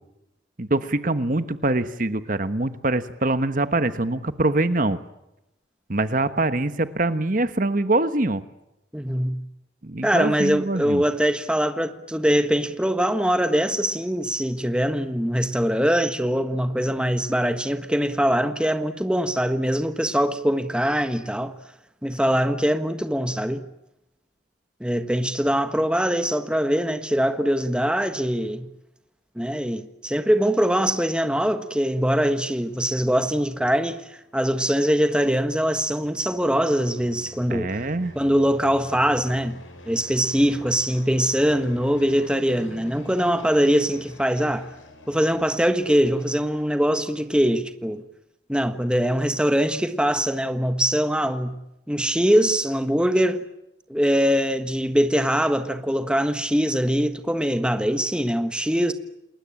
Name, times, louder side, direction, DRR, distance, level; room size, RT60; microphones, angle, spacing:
voice 1, 0.6-5.0 5.9-8.4 9.8-11.0 37.5-38.1, right 2 dB, 45° right, 1.2 m, -24 dB
voice 2, 8.9-9.4 10.0-21.5 22.0-23.6 24.8-28.7 29.3-37.7 38.1-44.7 45.1-48.0 48.5-51.6 51.9-53.5 53.9-58.9, equal, 5° right, 1.4 m, -22 dB
sound 1, 34.0-47.0, left 1 dB, 85° left, 6.6 m, -46 dB
29.0 x 21.0 x 8.9 m
head